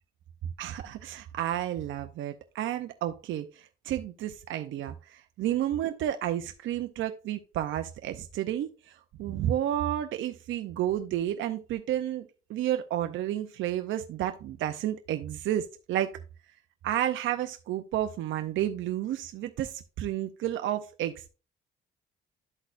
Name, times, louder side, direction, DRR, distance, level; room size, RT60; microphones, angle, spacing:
voice 1, 0.6-16.1 16.8-21.3, right 12 dB, 75° right, 7 dB, 0.6 m, -31 dB
12.0 x 4.0 x 2.5 m, 0.32 s
cardioid pair, 90°, 20 cm